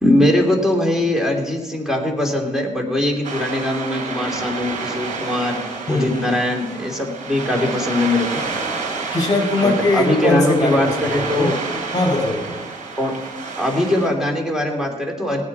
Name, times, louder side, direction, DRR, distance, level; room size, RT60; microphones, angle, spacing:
voice 1, 0.0-5.6 5.9-8.4 9.6-11.6 13.0-13.1 13.6-15.4, left 1 dB, 5° right, 1 dB, 3.3 m, -21 dB
sound 1, 3.2-14.1, right 4 dB, 80° right, 3.3 m, -29 dB
voice 2, 5.9-6.4 9.1-11.5 11.9-12.6, left 2 dB, 30° left, 1 dB, 5.0 m, -21 dB
18.5 x 9.5 x 4.3 m, 1.2 s
cardioid pair, 85°, 13 cm